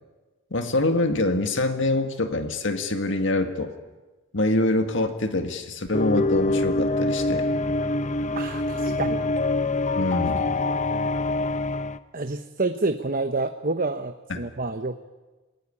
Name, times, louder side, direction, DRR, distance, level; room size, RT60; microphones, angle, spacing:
voice 1, 0.5-3.7 4.3-7.5 10.0-10.5 14.3-14.5, left 2 dB, 60° left, 7 dB, 2.0 m, -25 dB
sound 1, 5.9-12.0, left 2 dB, 35° left, 0.8 m, -25 dB
voice 2, 8.3-9.2 12.1-15.0, right 3 dB, 40° right, 8 dB, 0.9 m, -28 dB
28.0 x 19.0 x 9.9 m, 1.2 s
head